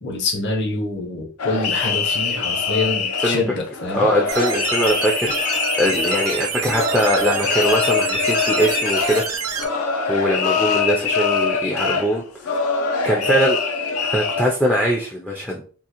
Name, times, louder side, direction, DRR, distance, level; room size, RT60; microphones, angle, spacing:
voice 1, 0.0-4.1, left 3 dB, 50° left, 2 dB, 0.7 m, -25 dB
sound 1, 1.4-14.4, left 5 dB, 85° left, 0.5 m, -23 dB
voice 2, 3.9-9.2 10.1-12.2 12.5-12.6 13.0-13.6 14.0-15.6, equal, 5° left, -2 dB, 0.3 m, -21 dB
sound 2, 4.3-9.6, right 7 dB, 80° right, 0.7 m, -27 dB
3.6 x 2.4 x 2.9 m, 0.42 s
head